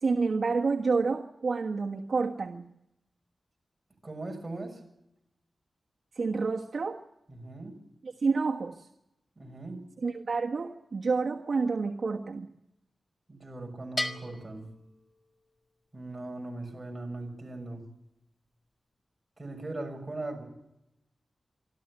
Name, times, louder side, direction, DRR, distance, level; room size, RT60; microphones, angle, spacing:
voice 1, 0.0-2.7 6.1-7.0 8.0-8.9 10.0-12.5, right 4 dB, 60° right, 0 dB, 1.5 m, -29 dB
voice 2, 4.0-4.8 7.3-7.8 9.4-9.8 13.3-14.7 15.9-17.8 19.4-20.4, right 2 dB, 25° right, 2 dB, 6.8 m, -39 dB
Bell, 14.0-15.7, left 2 dB, 25° left, 1.9 m, -37 dB
26.5 x 13.0 x 9.7 m, 0.86 s
wide cardioid pair, 115°, 0 cm